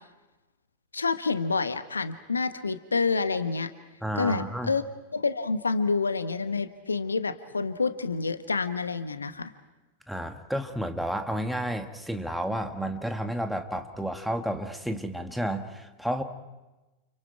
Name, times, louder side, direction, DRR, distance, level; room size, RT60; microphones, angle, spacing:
voice 1, 0.9-3.7 4.2-4.8 5.1-9.5, left 4 dB, 75° left, 12 dB, 1.1 m, -28 dB
voice 2, 4.0-4.7 10.1-16.2, right 1 dB, ahead, 5 dB, 1.8 m, -31 dB
30.0 x 29.5 x 4.6 m, 1.1 s
figure-of-eight pair, 90°, 0 cm